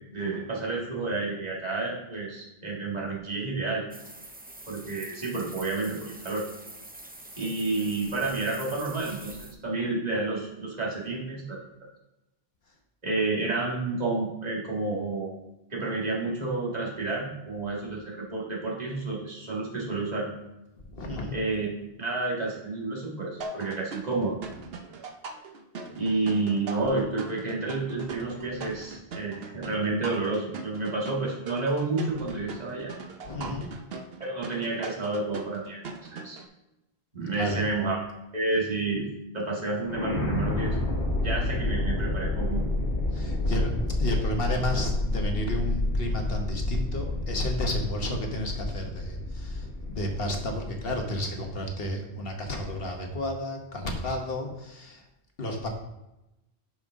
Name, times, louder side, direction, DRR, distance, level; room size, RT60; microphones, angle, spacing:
voice 1, 0.1-3.8 4.7-6.4 7.4-11.6 13.0-15.4 15.7-20.3 21.3-21.7 22.0-24.4 25.9-32.9 34.2-35.8 36.1-36.4 37.1-38.0 38.3-39.1 39.3-40.8 41.2-42.7, right 3 dB, 40° right, -4 dB, 2.0 m, -30 dB
sound 1, 3.9-9.5, right 1 dB, 10° right, 0.4 m, -45 dB
voice 2, 20.9-21.4 33.2-33.7 37.3-37.6 43.1-55.0 55.4-55.7, left 1 dB, 60° left, 2 dB, 1.4 m, -32 dB
sound 2, 23.4-36.5, right 4 dB, 70° right, 1.0 m, -41 dB
sound 3, 39.9-50.9, left 2 dB, 80° left, 1.7 m, -29 dB
10.5 x 5.4 x 3.6 m, 0.92 s
omnidirectional pair, 1.1 m